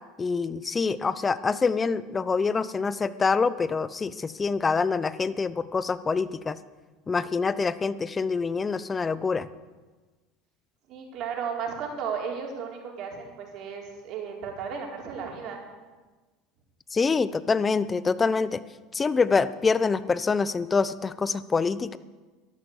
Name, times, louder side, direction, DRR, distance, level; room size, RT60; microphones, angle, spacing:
voice 1, 0.2-6.6 7.1-9.5 16.9-18.6 18.9-22.0, left 4 dB, 25° left, 16 dB, 0.8 m, -25 dB
voice 2, 10.9-15.6, right 6 dB, 55° right, 0 dB, 4.2 m, -34 dB
13.0 x 11.5 x 8.2 m, 1.3 s
hypercardioid pair, 80°, 0 cm